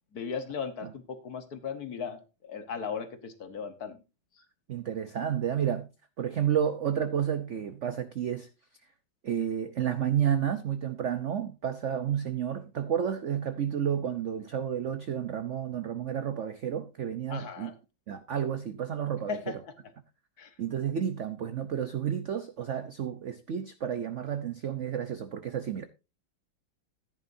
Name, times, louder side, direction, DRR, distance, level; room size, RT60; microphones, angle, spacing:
voice 1, 0.1-4.0 17.3-17.7 19.3-19.7 20.4-20.5, left 6 dB, 50° left, 1.6 m, -37 dB
voice 2, 4.7-5.9 6.2-8.5 9.2-17.7 18.1-19.4 20.6-25.8, right 9 dB, 75° right, 0.6 m, -31 dB
14.5 x 9.8 x 2.6 m
omnidirectional pair, 2.2 m